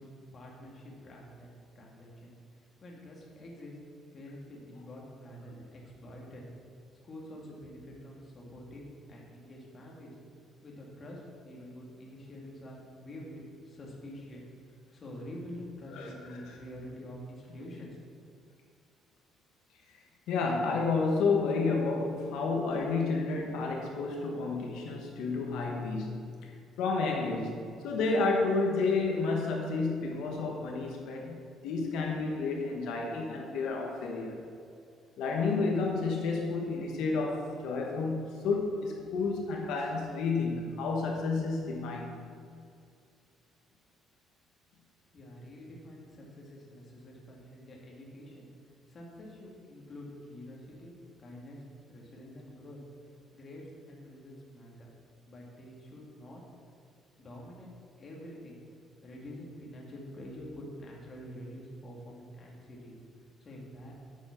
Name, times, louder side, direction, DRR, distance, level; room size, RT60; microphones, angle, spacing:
voice 1, 0.0-2.3 2.8-3.8 4.1-6.4 7.0-10.2 10.6-18.0 45.1-48.5 48.9-51.6 51.9-52.8 53.3-54.9 55.3-56.4 57.2-57.7 58.0-58.6 59.0-62.9 63.4-63.9, equal, 25° left, -2 dB, 1.7 m, -47 dB
voice 2, 16.0-16.4 20.3-26.5 26.8-34.4 35.2-42.2, left 3 dB, 70° left, 0 dB, 1.3 m, -31 dB
8.9 x 7.2 x 5.7 m, 2.4 s
cardioid pair, 180°, 0 cm